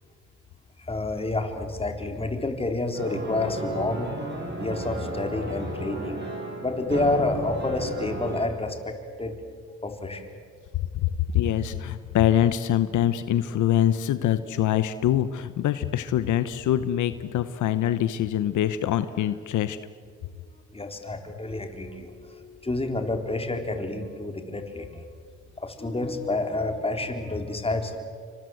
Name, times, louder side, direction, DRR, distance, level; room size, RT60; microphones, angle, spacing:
voice 1, 0.8-4.1 4.6-6.2 6.6-9.3 9.8-10.3 20.7-25.0 25.6-28.0, left 2 dB, 20° left, 5 dB, 3.9 m, -29 dB
sound 1, 2.9-8.4, right 2 dB, 35° right, 6.6 m, -34 dB
voice 2, 10.9-19.8, left 11 dB, 75° left, 12 dB, 1.0 m, -24 dB
28.5 x 25.0 x 7.9 m, 2.1 s
cardioid pair, 90°, 30 cm